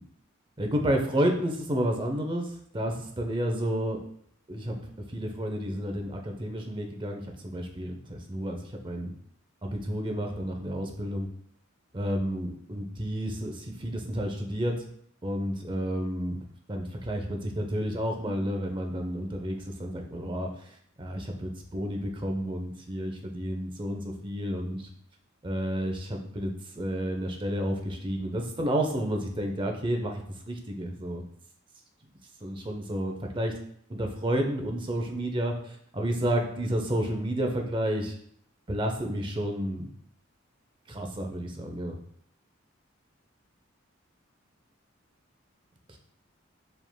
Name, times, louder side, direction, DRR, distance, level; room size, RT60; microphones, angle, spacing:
voice 1, 0.6-4.0 4.5-4.8 5.1-9.1 9.6-11.3 11.9-14.7 15.2-16.4 16.7-24.9 25.4-31.2 32.4-33.5 33.9-38.1 38.7-39.9 40.9-42.0 45.9-46.0, equal, 25° right, 3 dB, 0.5 m, -31 dB
4.9 x 3.6 x 2.2 m, 0.65 s
head